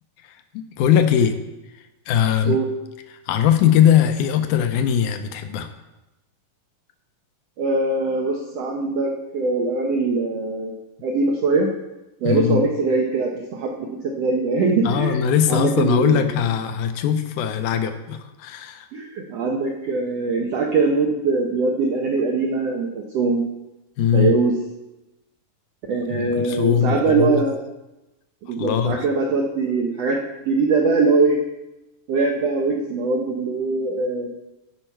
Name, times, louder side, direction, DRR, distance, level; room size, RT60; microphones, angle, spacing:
voice 1, 0.5-1.4 2.1-2.6 3.3-5.7 12.2-12.6 14.8-18.9 24.0-24.3 26.1-27.4 28.6-29.0, left 9 dB, 80° left, 7 dB, 2.0 m, -20 dB
voice 2, 7.6-10.7 11.0-11.7 12.2-15.2 15.5-16.3 18.9-23.4 24.1-24.6 25.9-27.6 28.4-30.2 30.4-31.4 32.1-34.3, right 3 dB, 80° right, 1 dB, 1.4 m, -22 dB
15.5 x 5.6 x 4.4 m, 0.99 s
omnidirectional pair, 4.0 m